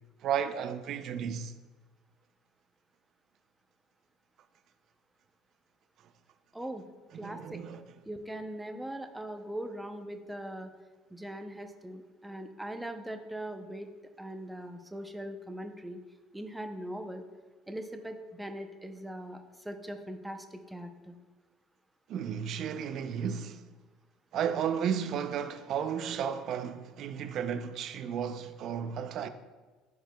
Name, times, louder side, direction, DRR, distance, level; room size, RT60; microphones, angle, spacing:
voice 1, 0.2-1.5 7.1-7.8 22.1-23.6 24.3-29.3, right 8 dB, 55° right, 0.5 m, -33 dB
voice 2, 6.5-6.8 7.1-7.7 8.1-10.7 11.1-13.9 14.2-16.0 16.3-17.2 17.7-21.2, right 1 dB, 5° right, 0.6 m, -40 dB
13.0 x 4.7 x 2.3 m
cardioid pair, 130°, 0 cm